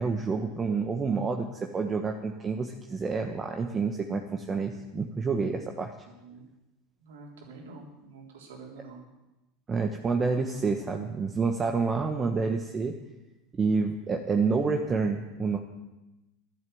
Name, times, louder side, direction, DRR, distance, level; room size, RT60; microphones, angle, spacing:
voice 1, 0.0-5.9 9.7-12.9 13.5-15.6, right 4 dB, 25° right, 3 dB, 1.3 m, -28 dB
voice 2, 6.1-6.4 7.0-9.0, right 3 dB, 80° right, 0 dB, 3.6 m, -47 dB
12.0 x 11.0 x 7.8 m, 1.0 s
hypercardioid pair, 90°, 0 cm